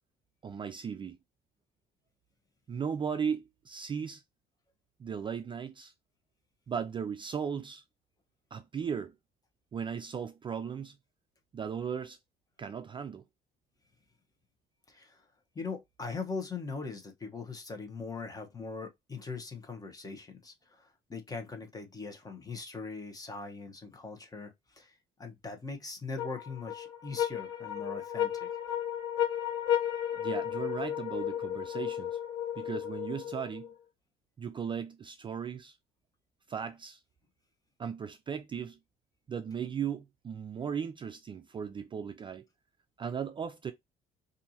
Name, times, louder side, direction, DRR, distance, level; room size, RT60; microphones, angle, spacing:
voice 1, 0.4-1.2 2.7-4.2 5.0-5.9 6.7-7.8 8.5-9.1 9.7-11.0 11.5-12.2 12.6-13.2 30.1-32.2 32.6-33.7 34.4-35.8 36.5-37.0 37.8-38.8 39.3-42.4 43.0-43.7, right 7 dB, 30° right, 0.4 m, -37 dB
voice 2, 14.9-15.3 15.5-28.5, left 4 dB, 20° left, 1.0 m, -41 dB
sound 1, 26.2-33.7, left 10 dB, 85° left, 1.6 m, -33 dB
4.2 x 2.7 x 2.8 m
cardioid pair, 110°, 17 cm